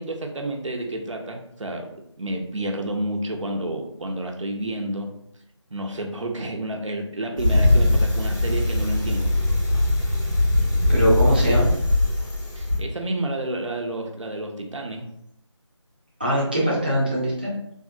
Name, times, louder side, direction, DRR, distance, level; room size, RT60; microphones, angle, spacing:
voice 1, 0.0-5.1 5.7-9.5 12.5-15.1, right 1 dB, 80° right, 2 dB, 0.6 m, -30 dB
Bicycle, 7.4-12.8, left 2 dB, 40° left, 1.2 m, -21 dB
voice 2, 10.9-11.7 16.2-17.5, equal, 20° right, -7 dB, 0.5 m, -22 dB
3.5 x 2.0 x 2.5 m, 0.74 s
figure-of-eight pair, 170°, 16 cm